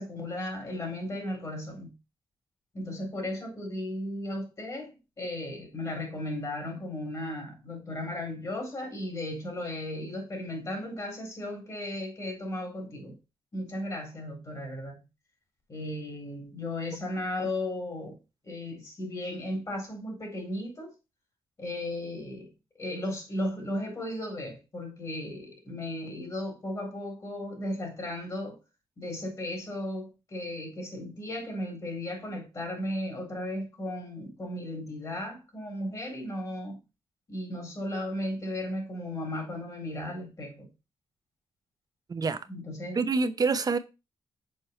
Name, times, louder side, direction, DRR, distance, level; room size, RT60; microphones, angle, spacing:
voice 1, 0.0-1.9 2.7-13.2 13.5-15.0 15.7-18.2 18.4-20.9 21.6-22.5 22.7-28.6 29.0-36.8 37.3-40.7 42.5-43.0, left 1 dB, 35° left, 4.1 m, -35 dB
voice 2, 42.1-42.5 43.0-43.8, right 4 dB, 40° right, 0.9 m, -26 dB
6.5 x 4.6 x 4.4 m
cardioid pair, 90°, 10 cm